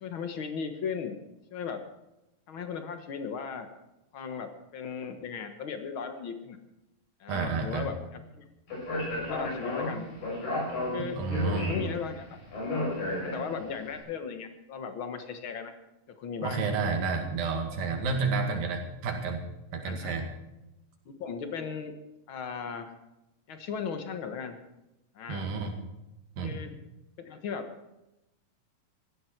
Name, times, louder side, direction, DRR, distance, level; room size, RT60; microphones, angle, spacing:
voice 1, 0.0-1.2 1.5-1.8 2.5-3.7 4.1-6.6 7.2-8.4 9.2-10.1 10.9-11.2 11.6-12.2 13.2-15.7 16.2-16.6 18.5-18.6 19.8-20.1 21.1-21.9 22.3-22.9 23.5-24.6 25.1-25.5 26.4-26.7 27.2-27.7, left 6 dB, 65° left, 7 dB, 1.3 m, -37 dB
voice 2, 7.3-7.9 11.0-11.7 16.4-19.4 19.7-20.3 25.3-25.7 26.4-26.6, right 4 dB, 85° right, 3 dB, 3.8 m, -30 dB
Speech, 8.7-13.7, left 1 dB, 85° left, 8.2 m, -33 dB
17.0 x 14.5 x 4.5 m, 0.93 s
omnidirectional pair, 4.0 m